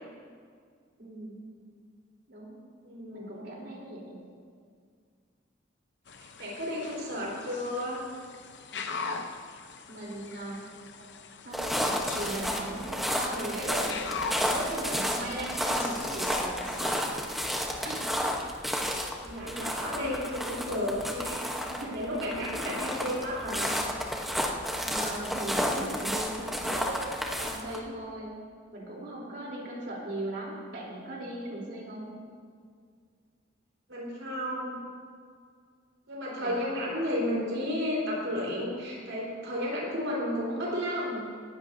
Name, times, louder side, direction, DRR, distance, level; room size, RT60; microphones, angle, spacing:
voice 1, 1.0-1.5 2.3-2.6 3.1-4.2 9.9-10.7 11.4-14.0 14.5-17.3 17.8-18.1 21.7-22.1 24.8-28.3 28.7-32.1 36.4-36.6, right 1 dB, 60° right, -3 dB, 3.6 m, -38 dB
voice 2, 2.8-3.5 6.2-8.0 11.0-11.1 19.2-21.4 21.9-23.7 32.0-32.1 33.9-34.8 36.1-41.3, left 1 dB, 85° right, -5 dB, 4.5 m, -32 dB
sound 1, 6.1-17.1, left 4 dB, 65° left, 0.8 m, -42 dB
sound 2, 11.5-27.8, equal, ahead, 1.0 m, -32 dB
19.5 x 15.0 x 2.8 m, 2.1 s
head